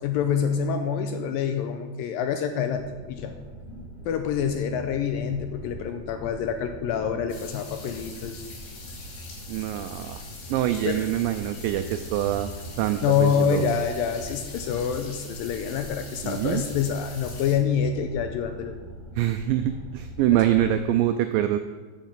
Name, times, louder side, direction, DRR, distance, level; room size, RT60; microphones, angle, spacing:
voice 1, 0.0-2.8 3.1-3.4 4.1-8.5 10.8-11.1 13.0-18.8 20.3-20.4, left 7 dB, 80° left, 6 dB, 2.1 m, -26 dB
sound 1, 2.7-20.8, right 1 dB, 25° left, 3.5 m, -42 dB
sound 2, 7.3-17.6, left 4 dB, 65° left, 4.0 m, -44 dB
voice 2, 9.5-10.2 10.5-13.6 16.2-16.6 19.2-21.6, right 12 dB, 90° right, 8 dB, 2.0 m, -25 dB
9.3 x 7.2 x 7.5 m, 1.4 s
omnidirectional pair, 4.5 m